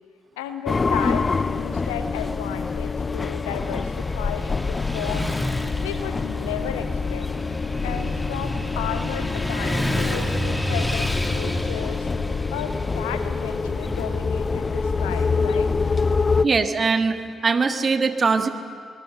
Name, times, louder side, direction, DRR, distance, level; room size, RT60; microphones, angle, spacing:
voice 1, 0.4-5.4 5.8-7.3 7.8-12.1 12.5-15.7, left 9 dB, 80° left, 9 dB, 1.0 m, -34 dB
sound 1, 0.7-16.5, left 4 dB, 35° left, 0.6 m, -26 dB
Motorcycle / Traffic noise roadway noise, 3.1-17.2, equal, 10° left, 2.2 m, -31 dB
voice 2, 16.4-18.5, right 4 dB, 40° right, 8 dB, 1.5 m, -21 dB
25.5 x 20.0 x 6.8 m, 2.2 s
hypercardioid pair, 40°, 0 cm